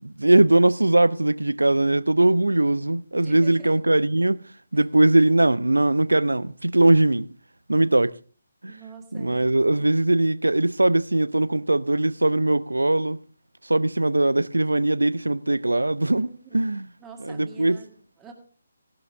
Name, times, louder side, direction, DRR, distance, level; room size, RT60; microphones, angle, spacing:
voice 1, 0.0-4.4 4.7-7.3 7.7-8.1 8.6-8.7 9.1-13.2 13.7-16.9 17.2-17.8, right 2 dB, 80° right, 0.5 m, -20 dB
voice 2, 3.1-3.7 8.7-9.5 16.3-16.6 17.0-18.3, right 6 dB, 10° right, 1.8 m, -45 dB
17.0 x 11.5 x 3.5 m
figure-of-eight pair, 145°, 0 cm